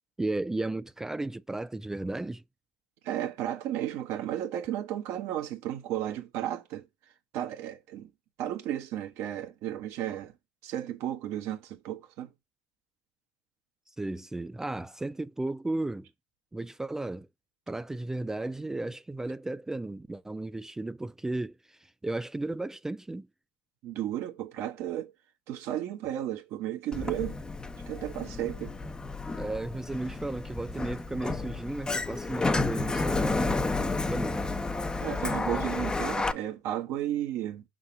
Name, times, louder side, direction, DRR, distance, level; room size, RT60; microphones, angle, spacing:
voice 1, 0.2-2.4 14.0-16.1 16.5-17.3 17.7-23.3 29.3-34.4, right 2 dB, 10° right, 0.3 m, -34 dB
voice 2, 3.0-6.9 7.3-8.1 8.4-10.3 10.6-12.3 23.8-25.1 25.5-27.4 27.9-28.8 35.0-37.6, right 12 dB, 50° right, 1.3 m, -33 dB
Sliding door, 26.9-36.3, left 3 dB, 15° left, 0.7 m, -31 dB
5.9 x 3.8 x 5.8 m
hypercardioid pair, 75°, 6 cm